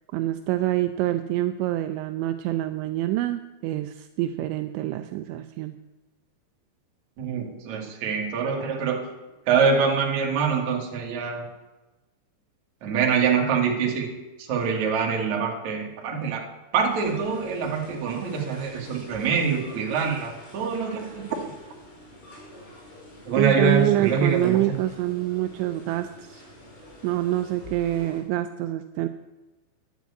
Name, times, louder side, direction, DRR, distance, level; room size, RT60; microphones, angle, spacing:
voice 1, 0.1-5.8 23.4-26.4 27.0-29.1, right 14 dB, 85° right, 9 dB, 2.7 m, -26 dB
voice 2, 7.2-9.0 9.5-11.4 12.8-14.1 14.4-16.4 16.7-21.3 23.3-24.8, right 5 dB, 50° right, 0 dB, 2.5 m, -25 dB
sound 1, 16.9-28.2, left 1 dB, 60° left, 6.3 m, -47 dB
10.5 x 8.4 x 8.3 m, 1.1 s
omnidirectional pair, 5.4 m